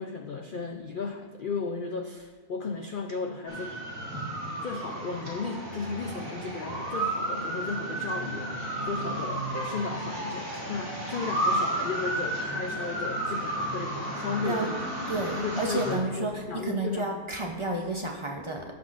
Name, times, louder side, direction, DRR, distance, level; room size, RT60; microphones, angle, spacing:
voice 1, 0.0-3.7 4.6-8.6 8.9-14.9 15.3-17.3, left 4 dB, 85° left, 4 dB, 0.4 m, -35 dB
sound 1, 3.5-16.0, right 1 dB, 60° right, 2.5 m, -32 dB
voice 2, 15.1-18.6, right 2 dB, 45° right, 1 dB, 0.4 m, -31 dB
16.0 x 6.0 x 2.5 m, 1.3 s
omnidirectional pair, 1.6 m